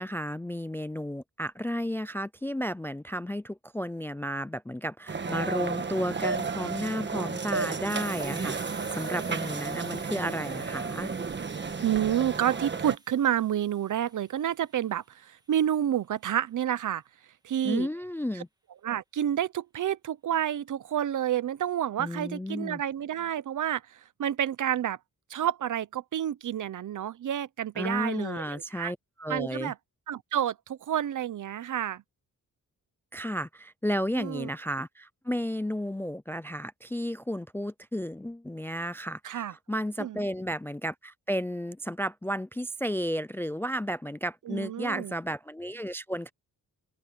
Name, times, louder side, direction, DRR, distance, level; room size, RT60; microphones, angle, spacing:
voice 1, 0.0-11.1 17.6-18.5 22.0-22.8 27.8-29.7 33.1-46.3, equal, 5° left, 0.3 m, -33 dB
sound 1, 5.1-13.0, right 4 dB, 30° right, 1.4 m, -33 dB
Hiss, 7.9-15.3, right 2 dB, 10° right, 1.5 m, -50 dB
voice 2, 11.8-17.0 17.4-17.9 18.3-18.4 18.8-25.0 25.3-28.9 29.3-29.8 30.1-32.0 34.1-34.5 39.2-39.5 40.0-40.2 44.5-45.2, right 10 dB, 60° right, 0.8 m, -29 dB
open air
wide cardioid pair, 155°, 34 cm